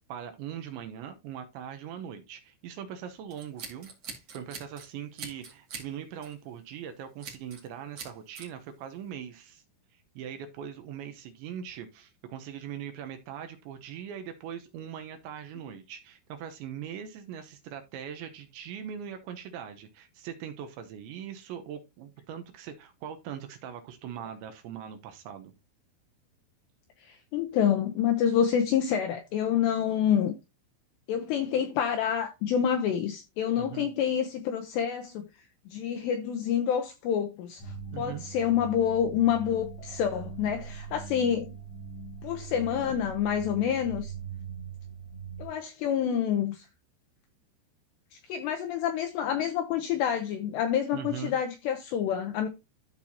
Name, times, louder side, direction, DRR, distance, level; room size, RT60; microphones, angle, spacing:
voice 1, 0.1-3.9 4.3-9.6 10.2-25.5 33.6-33.9 37.9-38.2 50.9-51.3, right 9 dB, 75° right, 2.9 m, -41 dB
Scissors, 3.3-4.9 5.2-5.9 6.2-6.4 7.2-7.7 8.0-8.5, right 5 dB, 50° right, 2.1 m, -42 dB
voice 2, 27.0-30.3 31.1-35.3 35.7-41.6 42.2-44.1 45.4-46.7 48.1-52.5, left 9 dB, 85° left, 2.5 m, -28 dB
sound 1, 37.6-45.5, right 6 dB, 65° left, 1.8 m, -41 dB
13.5 x 4.5 x 2.7 m
omnidirectional pair, 5.8 m